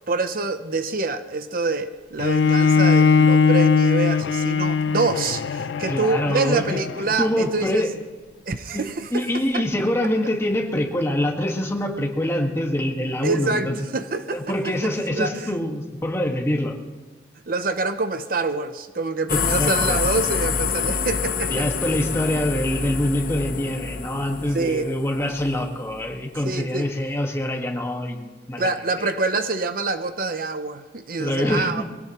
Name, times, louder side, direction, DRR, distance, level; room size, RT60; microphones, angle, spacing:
voice 1, 0.1-7.8 8.5-9.3 9.5-9.6 13.2-14.4 15.1-15.5 17.5-21.7 24.5-24.9 26.4-26.9 28.6-31.8, right 3 dB, 50° right, 9 dB, 0.8 m, -26 dB
Bowed string instrument, 2.2-7.4, left 5 dB, 80° left, 0.5 m, -20 dB
voice 2, 5.9-6.8 7.2-7.9 8.7-13.8 14.3-16.8 19.3-20.1 21.5-28.7 29.0-29.1 31.2-31.8, left 1 dB, 15° left, 1 dB, 1.7 m, -25 dB
sound 1, 19.3-26.1, left 6 dB, 50° left, 0.8 m, -27 dB
23.0 x 17.0 x 3.1 m, 1.3 s
head